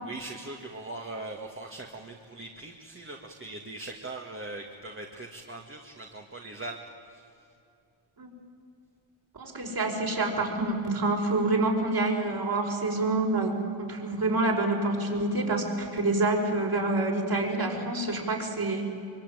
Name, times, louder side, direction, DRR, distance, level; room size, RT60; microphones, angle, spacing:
voice 1, 0.0-6.8 7.1-7.3, right 2 dB, 25° right, 1 dB, 1.9 m, -40 dB
voice 2, 9.3-13.5 13.8-18.9, right 2 dB, 50° right, 0 dB, 5.5 m, -27 dB
24.5 x 24.0 x 9.2 m, 2.6 s
wide cardioid pair, 130°, 47 cm